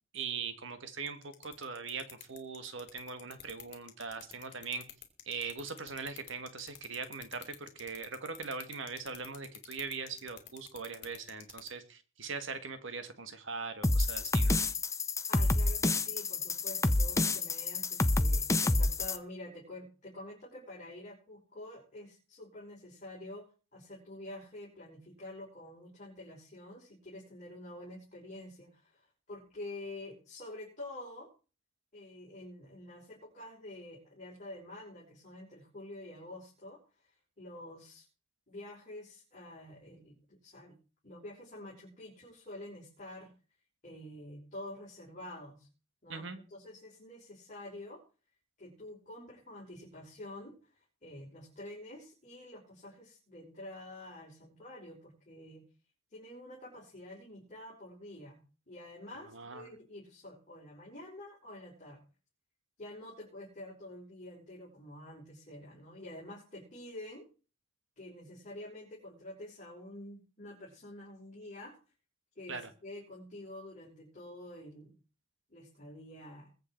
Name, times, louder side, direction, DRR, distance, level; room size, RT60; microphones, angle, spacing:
voice 1, 0.1-4.8 5.2-14.6 46.1-46.4 59.3-59.7 72.5-72.7, right 5 dB, 65° right, 9 dB, 1.7 m, -41 dB
sound 1, 1.1-11.7, left 12 dB, 55° left, 2.8 m, -48 dB
sound 2, 13.8-19.2, left 2 dB, 15° left, 0.7 m, -28 dB
voice 2, 15.3-23.5 23.7-31.3 31.9-38.0 38.5-40.8 41.0-43.3 43.8-45.7 46.0-48.0 48.6-55.6 56.1-58.4 58.7-62.0 62.8-67.3 68.0-71.8 72.4-75.0 75.5-76.5, left 1 dB, 35° left, -6 dB, 5.4 m, -48 dB
22.0 x 8.0 x 4.5 m, 0.36 s
head